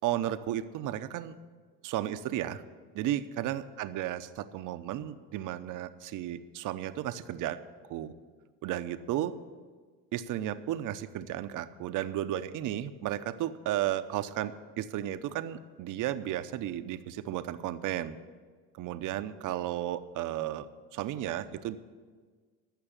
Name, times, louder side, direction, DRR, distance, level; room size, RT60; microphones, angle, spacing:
voice 1, 0.0-1.4 1.8-2.6 2.9-7.6 7.9-8.1 8.6-9.3 10.1-18.2 18.8-21.8, right 12 dB, 65° right, 11 dB, 0.8 m, -34 dB
15.0 x 6.1 x 9.9 m, 1.5 s
cardioid pair, 110°, 34 cm